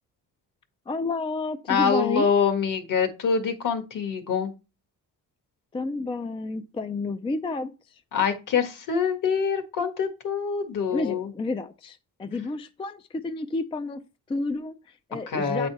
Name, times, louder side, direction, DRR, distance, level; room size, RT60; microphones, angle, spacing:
voice 1, 0.9-2.3 5.7-8.0 10.9-14.0 14.3-15.7, left 3 dB, 15° left, 0.4 m, -31 dB
voice 2, 1.7-4.5 8.1-11.3 15.3-15.7, left 6 dB, 60° left, 1.6 m, -25 dB
8.7 x 4.2 x 4.5 m
cardioid pair, 130°, 36 cm